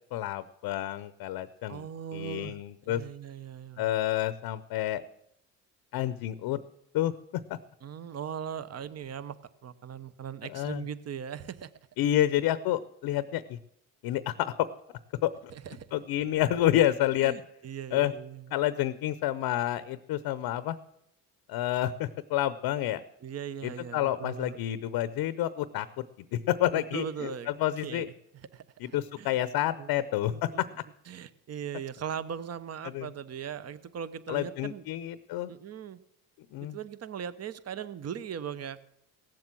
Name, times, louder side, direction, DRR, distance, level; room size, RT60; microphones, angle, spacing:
voice 1, 0.1-1.8 2.1-3.0 3.8-5.0 5.9-6.6 6.9-7.1 10.5-10.8 12.0-13.6 14.0-14.7 15.2-15.3 15.9-17.3 17.9-18.1 18.5-20.8 21.5-23.0 23.6-25.9 26.3-27.3 27.6-28.1 28.8-30.7 32.9-33.1 34.3-35.5 36.5-36.8, left 13 dB, 85° left, 14 dB, 0.7 m, -29 dB
voice 2, 1.7-2.6 2.8-3.9 7.8-9.4 9.6-11.7 15.5-15.9 17.2-18.6 23.2-24.6 26.7-27.5 27.8-29.4 29.8-29.9 30.3-34.8 35.5-36.0 36.6-38.8, right 8 dB, 45° right, 15 dB, 0.9 m, -39 dB
16.5 x 7.6 x 7.5 m, 0.78 s
cardioid pair, 90°, 36 cm